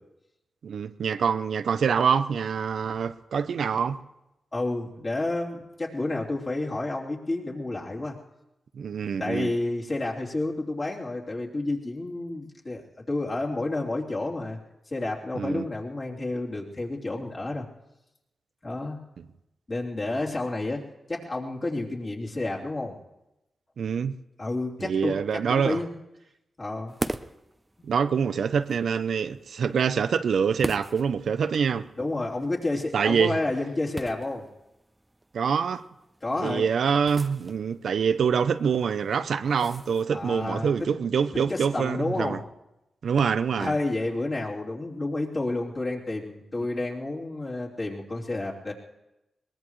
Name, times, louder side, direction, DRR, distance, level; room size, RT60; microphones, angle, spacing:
voice 1, 0.6-4.0 8.8-9.5 15.3-15.7 23.8-24.2 24.8-25.8 27.8-31.9 32.9-33.4 35.3-35.8 36.4-42.4 43.0-43.7, right 6 dB, 75° right, 0.6 m, -25 dB
voice 2, 4.5-8.2 9.2-14.6 14.9-17.6 18.6-19.0 19.7-22.9 24.4-25.1 25.5-25.9 26.6-26.9 32.0-34.5 36.2-36.6 40.1-40.7 41.5-42.4 43.6-48.7, left 2 dB, 40° left, 3.3 m, -30 dB
sound 1, 26.9-40.4, right 1 dB, 20° right, 0.7 m, -42 dB
22.0 x 20.0 x 3.2 m
cardioid pair, 65°, 0 cm